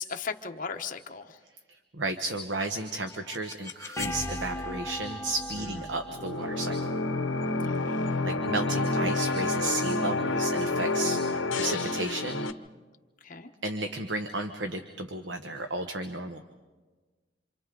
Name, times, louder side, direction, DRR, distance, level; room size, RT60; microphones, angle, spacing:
voice 1, 0.0-1.4 7.6-8.0 13.2-13.5, left 6 dB, 45° left, 5 dB, 1.1 m, -37 dB
voice 2, 1.7-7.0 8.2-12.5 13.6-16.4, right 2 dB, 70° right, 6 dB, 1.1 m, -33 dB
sound 1, 2.5-8.4, left 1 dB, 15° left, 1.0 m, -39 dB
sound 2, 6.1-12.5, left 2 dB, 80° left, 0.8 m, -29 dB
27.5 x 27.5 x 3.9 m, 1.3 s
head